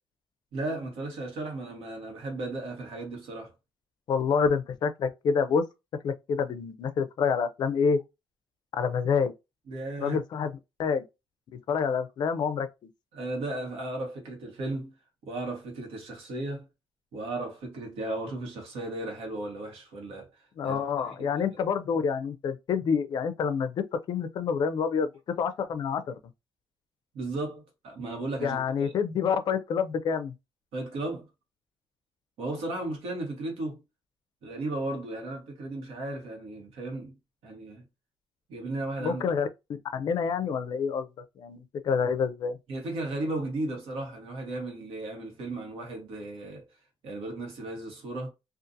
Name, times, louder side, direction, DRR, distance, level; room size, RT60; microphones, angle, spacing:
voice 1, 0.5-3.5 9.7-10.2 13.1-14.9 15.2-16.7 17.1-21.3 27.1-28.9 30.7-31.3 32.4-33.8 34.4-37.1 37.4-37.8 38.5-39.2 42.7-46.7 47.0-48.3, right 2 dB, 85° right, 1.2 m, -35 dB
voice 2, 4.1-5.6 6.0-8.0 8.7-9.3 10.0-10.5 10.8-11.0 11.7-12.7 20.6-25.1 25.4-26.2 28.4-30.3 39.0-39.5 39.9-41.1 41.4-42.6, left 6 dB, 50° left, 0.4 m, -27 dB
2.6 x 2.4 x 2.5 m
cardioid pair, 145°, 10 cm